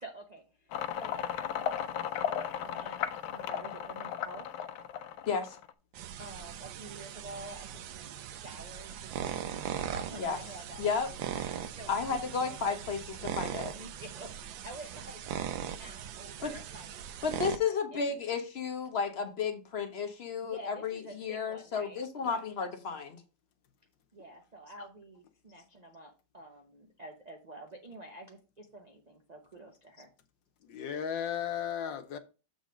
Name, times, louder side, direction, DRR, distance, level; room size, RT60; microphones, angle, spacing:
voice 1, 0.0-4.5 6.2-9.6 9.9-12.8 13.7-15.5 15.8-18.3 20.4-22.5 24.1-30.1, right 1 dB, 50° right, 0.5 m, -49 dB
sound 1, 0.7-5.7, left 9 dB, 90° left, 1.4 m, -35 dB
voice 2, 5.3-5.6 10.2-10.4 10.8-11.1 11.9-13.7 16.4-16.5 17.2-23.2, left 5 dB, 50° left, 0.7 m, -33 dB
sound 2, 5.9-17.6, right 9 dB, 80° right, 1.4 m, -40 dB
voice 3, 30.7-32.2, left 8 dB, 70° left, 1.5 m, -35 dB
7.2 x 4.0 x 5.0 m
omnidirectional pair, 2.1 m